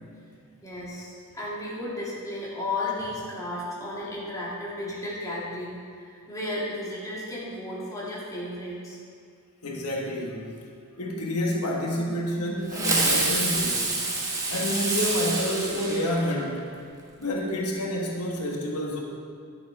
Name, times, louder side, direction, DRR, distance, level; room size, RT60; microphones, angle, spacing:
voice 1, 0.6-9.0, left 1 dB, 15° left, -7 dB, 2.4 m, -34 dB
voice 2, 9.6-10.5 11.0-13.9 14.5-16.7 17.2-19.0, equal, 90° left, 0 dB, 1.3 m, -28 dB
Fireworks, 12.7-16.6, right 2 dB, 15° right, 1.3 m, -27 dB
11.0 x 7.1 x 4.8 m, 2.2 s
head